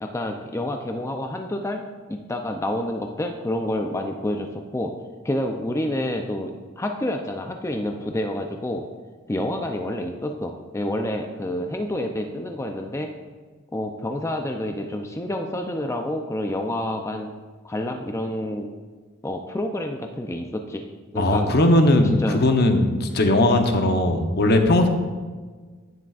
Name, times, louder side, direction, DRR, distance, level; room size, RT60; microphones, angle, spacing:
voice 1, 0.0-1.8 2.1-4.9 5.2-8.9 9.3-13.1 13.7-17.3 17.6-18.7 19.2-20.8 21.1-21.5 22.2-22.4, left 1 dB, 15° left, 4 dB, 0.4 m, -28 dB
voice 2, 21.2-24.9, left 1 dB, 55° left, 5 dB, 0.8 m, -18 dB
10.5 x 9.2 x 2.4 m, 1.4 s
head